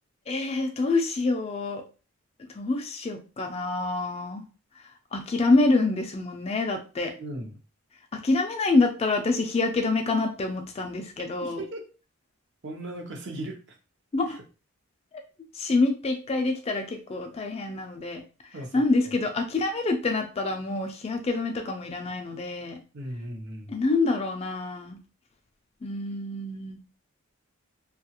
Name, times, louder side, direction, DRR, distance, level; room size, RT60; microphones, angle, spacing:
voice 1, 0.3-1.8 2.6-4.4 5.1-7.1 8.1-11.6 14.1-14.4 15.5-18.2 18.7-22.8 23.7-25.0 25.8-26.8, left 3 dB, 30° left, 5 dB, 0.3 m, -26 dB
voice 2, 7.2-7.6 11.4-11.9 12.6-13.8 14.2-14.4 18.5-19.1 22.9-23.7, right 1 dB, 55° right, 2 dB, 0.7 m, -37 dB
2.8 x 2.3 x 2.8 m, 0.34 s
head